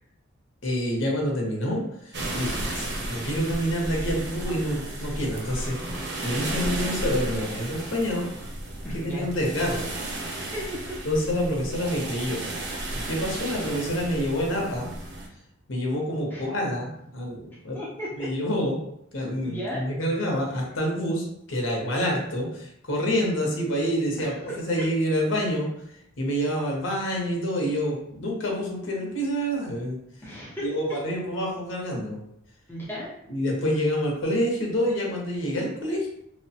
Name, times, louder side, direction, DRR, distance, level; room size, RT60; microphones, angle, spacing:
voice 1, 0.6-8.3 9.0-9.9 11.0-12.4 12.9-14.9 15.7-17.8 18.2-18.8 19.1-24.3 24.7-25.7 26.2-30.0 30.6-32.2 33.3-36.1, equal, 75° left, -1 dB, 0.8 m, -27 dB
sound 1, 2.1-15.3, right 1 dB, 55° right, 0.6 m, -33 dB
voice 2, 8.8-9.3 10.4-11.0 13.4-13.5 16.3-16.5 17.7-18.3 19.4-19.8 24.2-24.4 30.2-30.7 32.7-33.1, left 1 dB, 10° left, -6 dB, 0.5 m, -35 dB
3.0 x 2.1 x 2.8 m, 0.75 s
head